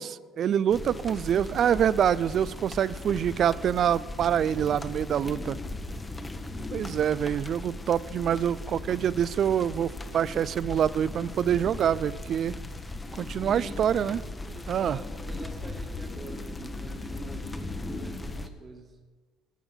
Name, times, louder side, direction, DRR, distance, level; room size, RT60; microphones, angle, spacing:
voice 1, 0.0-5.6 6.7-12.6 13.2-14.2 14.7-15.0, right 9 dB, 50° right, 19 dB, 0.3 m, -26 dB
sound 1, 0.7-18.5, left 2 dB, 20° left, 0.9 m, -38 dB
voice 2, 5.2-5.5 13.0-13.8 14.4-19.0, right 3 dB, 35° right, 4 dB, 1.6 m, -46 dB
12.0 x 7.1 x 5.7 m, 1.5 s
supercardioid pair, 90°, 0 cm